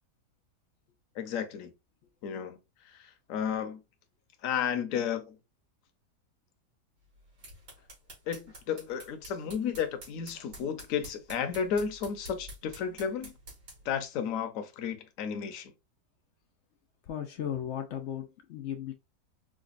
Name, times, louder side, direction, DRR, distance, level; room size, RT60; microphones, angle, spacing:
voice 1, 1.2-1.7 2.2-2.6 2.9-3.8 4.4-5.4 8.3-13.3 13.8-15.7, left 7 dB, 60° left, 0.9 m, -33 dB
sound 1, 7.1-13.9, right 1 dB, 75° right, 2.8 m, -50 dB
voice 2, 17.1-18.9, left 10 dB, 80° left, 0.6 m, -36 dB
4.9 x 2.3 x 2.4 m
omnidirectional pair, 1.8 m